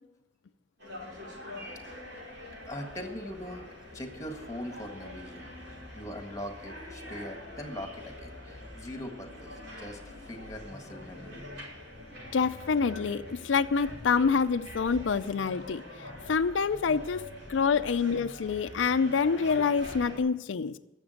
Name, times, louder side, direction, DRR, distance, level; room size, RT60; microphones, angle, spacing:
sound 1, 0.8-20.2, left 1 dB, 70° right, 5.8 m, -44 dB
voice 1, 2.4-3.7 3.9-11.4 17.8-17.9, equal, 15° left, 5 dB, 1.6 m, -42 dB
voice 2, 12.3-15.8 16.3-17.2 17.5-20.8, left 5 dB, 90° left, 10 dB, 0.4 m, -26 dB
12.0 x 7.3 x 9.3 m, 1.0 s
head